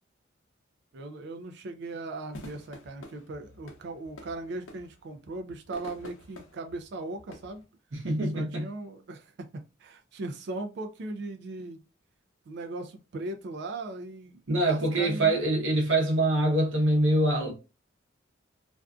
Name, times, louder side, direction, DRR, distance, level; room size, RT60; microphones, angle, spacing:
voice 1, 0.9-7.6 8.3-11.9 12.5-15.4, right 2 dB, 60° right, 0.4 m, -38 dB
sound 1, 2.3-7.6, left 2 dB, 85° left, 0.6 m, -49 dB
voice 2, 7.9-8.7 14.5-17.5, right 1 dB, 80° right, 0.8 m, -24 dB
2.5 x 2.2 x 2.3 m
head